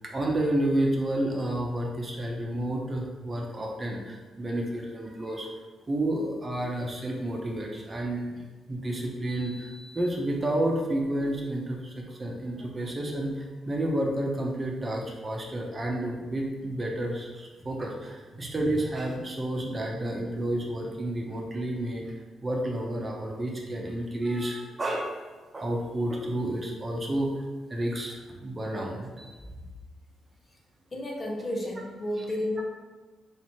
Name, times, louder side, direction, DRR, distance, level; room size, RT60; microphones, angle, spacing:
voice 1, 0.0-5.5 5.9-8.4 8.7-22.2 22.4-25.2 25.5-27.4 27.7-29.3, right 1 dB, 35° right, -1 dB, 0.8 m, -30 dB
voice 2, 30.9-32.6, left 1 dB, 40° left, -1 dB, 1.0 m, -32 dB
3.3 x 2.9 x 4.3 m, 1.3 s
hypercardioid pair, 45°, 0 cm